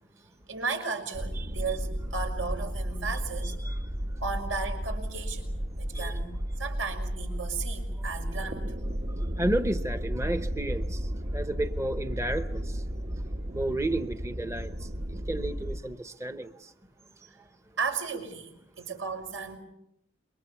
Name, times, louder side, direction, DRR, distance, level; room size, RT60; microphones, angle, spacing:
voice 1, 0.5-3.6 4.2-5.5 5.8-8.8 17.8-19.6, right 5 dB, 80° right, 5 dB, 6.0 m, -35 dB
sound 1, 1.1-15.8, equal, 40° right, 1.1 m, -33 dB
voice 2, 9.4-11.0 11.3-12.6 13.5-14.7 15.3-16.5, right 1 dB, 15° right, 9 dB, 0.9 m, -31 dB
28.5 x 23.5 x 7.1 m, 0.79 s
head